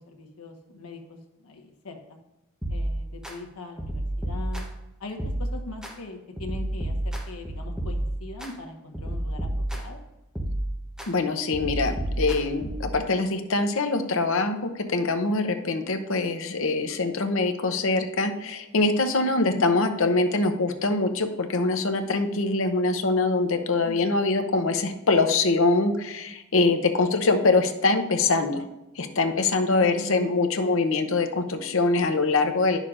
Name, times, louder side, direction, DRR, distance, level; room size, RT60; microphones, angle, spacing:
voice 1, 0.1-2.2 2.7-4.7 5.0-10.0 19.3-19.7 23.8-24.3 29.8-30.8, left 2 dB, 85° left, 4 dB, 1.3 m, -41 dB
sound 1, 2.6-3.3 3.8-4.9 5.2-5.9 6.4-8.5 8.9-10.0 10.4-11.1 11.5-12.9, right 1 dB, 5° right, 0.9 m, -31 dB
voice 2, 11.1-14.6 14.9-28.6 29.0-32.8, left 3 dB, 65° left, 7 dB, 0.7 m, -24 dB
9.8 x 6.5 x 2.5 m, 0.97 s
head